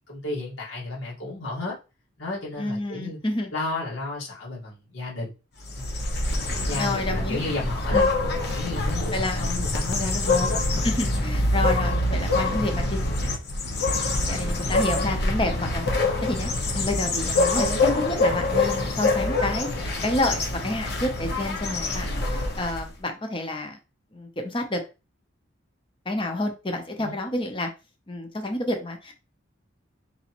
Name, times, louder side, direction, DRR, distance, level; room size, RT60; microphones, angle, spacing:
voice 1, 0.1-1.8 2.2-3.2 3.5-5.3 5.7-6.0 6.6-8.0 8.5-10.6 27.0-27.1, left 2 dB, 85° left, -5 dB, 1.9 m, -32 dB
voice 2, 2.6-3.5 6.7-7.4 7.9-8.1 9.1-9.5 10.8-13.1 14.3-15.8 16.2-17.7 18.0-23.8 24.1-24.8 26.1-27.7 28.1-29.1, left 1 dB, 25° left, 4 dB, 0.7 m, -29 dB
sound 1, 5.6-22.9, left 2 dB, 55° left, 0.9 m, -25 dB
4.1 x 3.1 x 2.9 m, 0.29 s
head